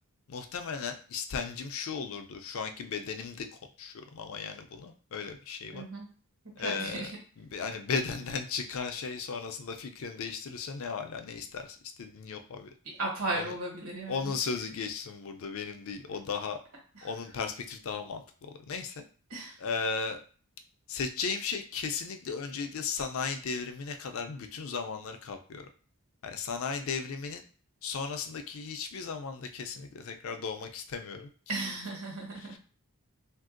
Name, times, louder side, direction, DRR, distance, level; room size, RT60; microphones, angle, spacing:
voice 1, 0.3-3.5 3.8-5.9 6.6-7.1 7.4-12.7 13.3-13.5 14.1-16.6 17.0-19.0 19.6-20.2 20.9-25.7 26.2-27.4 27.8-31.3 32.4-32.6, left 5 dB, 70° left, 6 dB, 0.4 m, -36 dB
voice 2, 5.7-6.1 6.6-7.1 13.0-14.3 16.9-17.1 19.3-19.6 31.5-32.6, right 2 dB, 70° right, -2 dB, 1.3 m, -35 dB
3.1 x 2.6 x 2.5 m, 0.40 s
head